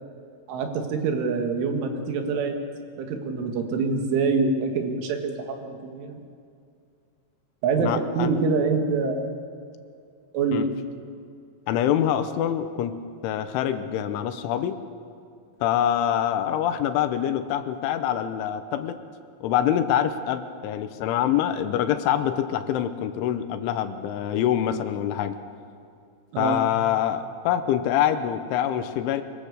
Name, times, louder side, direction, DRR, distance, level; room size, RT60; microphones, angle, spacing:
voice 1, 0.5-2.6 3.0-6.2 7.6-9.3 10.3-10.7 26.3-26.6, right 4 dB, 85° right, 4 dB, 4.4 m, -25 dB
voice 2, 7.8-8.3 10.5-10.7 11.7-13.0 13.2-14.8 15.6-19.0 19.4-25.4 26.4-29.2, left 10 dB, 90° left, 9 dB, 3.5 m, -25 dB
24.5 x 23.0 x 6.7 m, 2.4 s
omnidirectional pair, 5.4 m